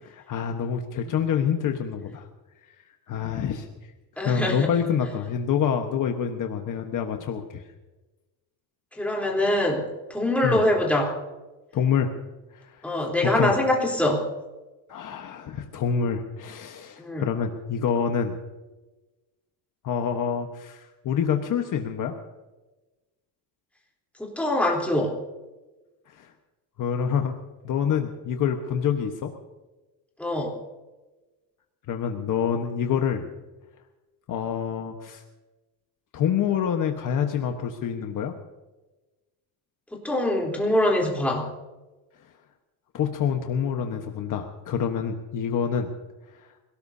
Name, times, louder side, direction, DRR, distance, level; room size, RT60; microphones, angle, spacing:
voice 1, 0.0-2.3 3.1-3.7 4.2-7.6 10.4-10.6 11.7-12.1 12.5-12.8 13.2-13.5 14.9-18.4 19.8-22.1 26.1-26.3 26.8-27.3 27.6-29.3 31.9-33.3 34.3-35.2 36.1-38.3 42.9-45.9, left 7 dB, 45° left, 4 dB, 1.3 m, -27 dB
voice 2, 4.2-4.7 9.0-9.8 10.1-11.1 12.8-14.2 17.0-17.3 24.2-25.1 30.2-30.5 39.9-41.4, left 1 dB, 5° left, -1 dB, 3.7 m, -24 dB
27.0 x 18.0 x 2.8 m, 1.1 s
cardioid pair, 140°, 42 cm